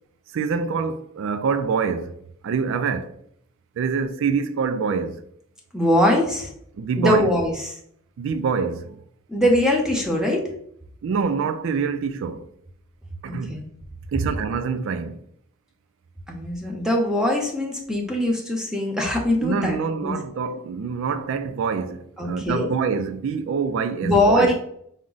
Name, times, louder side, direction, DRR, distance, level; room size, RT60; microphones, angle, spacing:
voice 1, 0.3-2.2 2.4-3.2 3.8-5.2 6.8-7.3 8.2-9.0 11.0-12.5 13.2-13.6 14.1-15.2 19.4-24.5, right 5 dB, 65° right, 0.3 m, -25 dB
voice 2, 5.7-6.5 7.0-7.7 9.3-10.4 13.3-13.6 16.3-19.8 20.0-20.1 22.2-22.7 24.0-24.5, left 1 dB, 5° right, 0.6 m, -21 dB
4.7 x 2.1 x 3.9 m
head